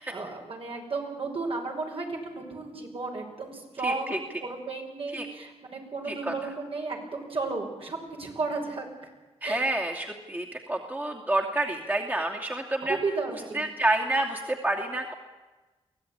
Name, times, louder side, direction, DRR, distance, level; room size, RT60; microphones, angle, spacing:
voice 1, 0.0-9.1 9.4-9.7 12.8-13.7, right 3 dB, 55° right, 1 dB, 6.0 m, -34 dB
voice 2, 3.8-4.2 5.1-5.3 6.1-6.3 9.4-13.0 13.3-15.1, right 1 dB, 15° right, 1 dB, 2.6 m, -29 dB
23.5 x 16.5 x 10.0 m, 1.2 s
cardioid pair, 80°, 11 cm